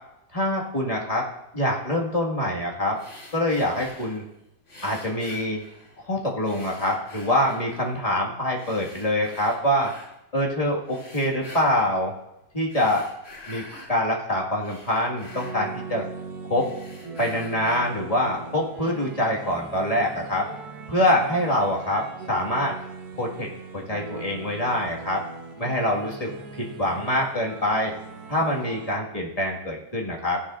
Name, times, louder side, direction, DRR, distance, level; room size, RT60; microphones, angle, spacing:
voice 1, 0.3-1.3 1.5-3.0 3.3-4.2 4.8-5.6 6.1-9.9 10.3-12.1 12.5-13.1 13.5-16.0 16.5-16.7 17.2-20.5 20.9-22.8 23.2-23.5 23.7-25.2 25.6-26.3 26.6-27.9 28.3-30.4, left 1 dB, 20° left, -2 dB, 1.8 m, -25 dB
sound 1, 2.9-4.3 4.7-6.1 6.4-8.0 8.5-10.1 10.8-12.0 12.6-14.0 14.4-16.2 16.5-18.0, left 2 dB, 40° left, 2.7 m, -46 dB
sound 2, 15.3-29.0, right 4 dB, 60° right, 1.6 m, -40 dB
15.0 x 11.0 x 2.5 m, 0.89 s
omnidirectional pair, 1.9 m